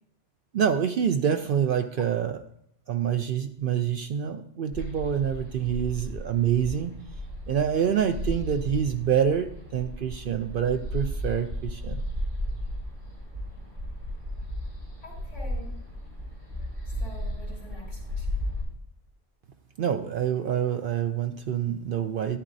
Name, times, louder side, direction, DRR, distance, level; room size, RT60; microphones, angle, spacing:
voice 1, 0.5-2.4 2.9-6.9 7.5-12.0 19.8-22.4, right 8 dB, 60° right, 8 dB, 0.6 m, -26 dB
sound 1, 4.7-18.6, left 1 dB, 45° right, 4.2 m, -35 dB
voice 2, 15.0-15.8 17.0-18.3, left 2 dB, 80° left, -2 dB, 2.8 m, -46 dB
13.5 x 10.0 x 2.6 m, 0.70 s
omnidirectional pair, 1.2 m